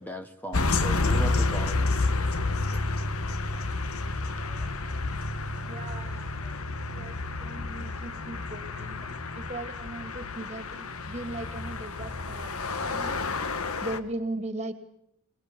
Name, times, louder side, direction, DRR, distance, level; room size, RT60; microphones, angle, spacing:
voice 1, 0.0-1.9 4.4-5.0 6.4-6.6 9.0-9.1, equal, 10° left, 7 dB, 1.1 m, -39 dB
sound 1, 0.5-14.0, left 3 dB, 70° left, 1.5 m, -30 dB
voice 2, 5.7-6.3 6.9-9.0 9.3-12.5 12.9-13.2 13.8-14.7, right 2 dB, 30° right, 9 dB, 2.6 m, -38 dB
24.0 x 21.0 x 8.7 m, 0.75 s
head